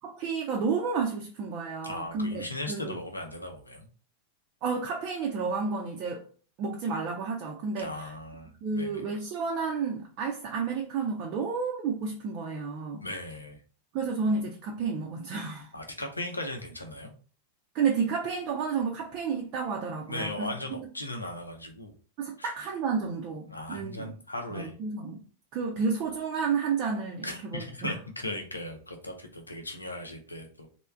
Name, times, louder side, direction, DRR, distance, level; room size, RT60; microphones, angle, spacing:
voice 1, 0.0-3.0 4.6-6.3 6.6-8.1 8.6-13.1 13.9-15.7 17.7-20.5 22.2-24.1 24.5-25.2 25.5-27.3 27.5-27.9, right 5 dB, 40° right, 0.5 m, -31 dB
voice 2, 1.8-3.9 7.8-9.0 13.0-13.6 15.7-17.1 20.1-21.9 22.4-22.5 23.5-24.7 27.2-30.7, left 1 dB, 80° left, 0.6 m, -37 dB
3.3 x 2.2 x 3.3 m
figure-of-eight pair, 90°, 0 cm